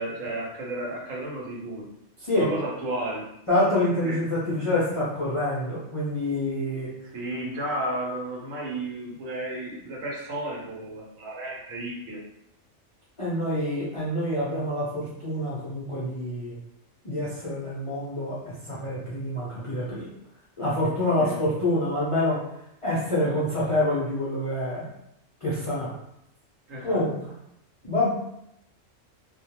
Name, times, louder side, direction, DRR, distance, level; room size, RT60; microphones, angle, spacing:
voice 1, 0.0-1.9 2.3-3.3 4.0-4.2 7.1-12.2 21.2-21.3 26.7-27.0, right 1 dB, 80° right, -2 dB, 1.1 m, -33 dB
voice 2, 3.5-6.9 13.2-16.6 17.0-20.1 20.6-22.4 22.8-24.9 25.4-25.9 26.8-27.3 27.8-28.1, left 1 dB, 45° left, -10 dB, 0.4 m, -26 dB
2.4 x 2.1 x 2.9 m, 0.80 s
omnidirectional pair, 1.3 m